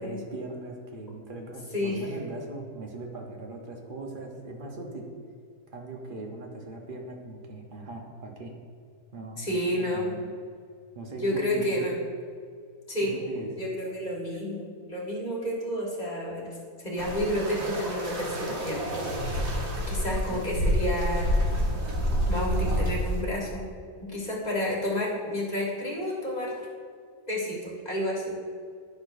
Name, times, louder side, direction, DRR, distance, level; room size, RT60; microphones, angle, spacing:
voice 1, 0.0-5.1 5.7-8.5 9.1-10.3 10.9-11.9 13.0-13.5 20.3-20.4, right 2 dB, 40° right, 1 dB, 0.9 m, -39 dB
voice 2, 9.4-10.1 11.2-11.9 12.9-13.1 13.6-16.6 16.8-18.8 19.1-21.3 22.3-23.6 24.1-26.7 27.3-28.4, equal, 30° left, -4 dB, 1.4 m, -30 dB
sound 1, 17.0-23.2, equal, 65° right, 1.5 m, -28 dB
10.5 x 6.1 x 2.6 m, 2.1 s
omnidirectional pair, 1.6 m